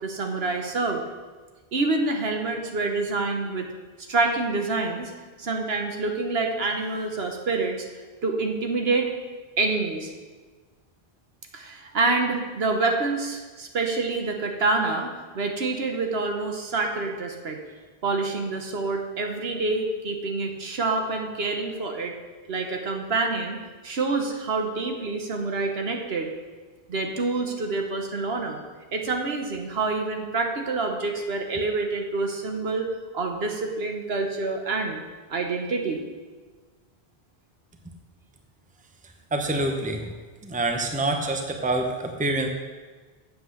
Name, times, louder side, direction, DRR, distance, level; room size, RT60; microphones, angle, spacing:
voice 1, 0.0-1.0 1.7-3.7 4.1-5.1 5.4-7.8 8.2-9.1 9.6-10.1 11.5-17.6 18.0-22.1 22.5-26.3 26.9-28.6 28.9-32.9 33.1-35.0 35.3-36.0, right 3 dB, 70° right, 3 dB, 1.3 m, -27 dB
voice 2, 39.3-40.1 40.4-42.5, right 2 dB, 10° right, 4 dB, 0.8 m, -26 dB
7.9 x 7.8 x 6.5 m, 1.4 s
omnidirectional pair, 1.1 m